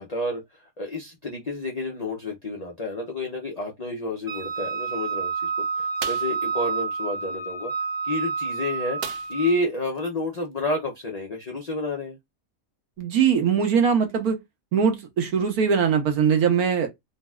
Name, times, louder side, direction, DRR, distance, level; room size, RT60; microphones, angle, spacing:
voice 1, 0.0-5.5 5.8-7.7 8.0-9.0 9.3-12.2, left 2 dB, 85° left, 0.3 m, -30 dB
Wind instrument woodwind instrument, 4.3-9.6, right 5 dB, 20° right, 0.6 m, -29 dB
sound 1, 6.0-6.4 9.0-9.6 9.9-10.0 10.4-10.6, right 7 dB, 70° right, 0.6 m, -36 dB
voice 2, 13.0-14.4 14.7-16.9, right 7 dB, 90° right, 1.3 m, -21 dB
3.8 x 2.0 x 2.3 m
omnidirectional pair, 1.5 m